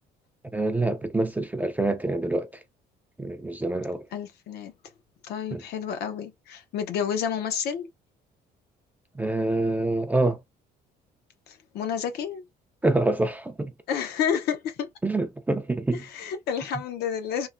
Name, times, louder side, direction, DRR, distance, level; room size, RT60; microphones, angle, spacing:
voice 1, 0.5-2.6 3.2-4.0 5.5-5.6 9.1-10.4 12.8-13.7 15.0-16.0, right 2 dB, 10° right, 0.3 m, -26 dB
voice 2, 4.1-4.7 5.2-7.9 11.5-12.4 13.9-14.9 15.9-17.5, left 8 dB, 70° left, 0.6 m, -30 dB
3.1 x 2.0 x 2.4 m
cardioid pair, 110°, 17 cm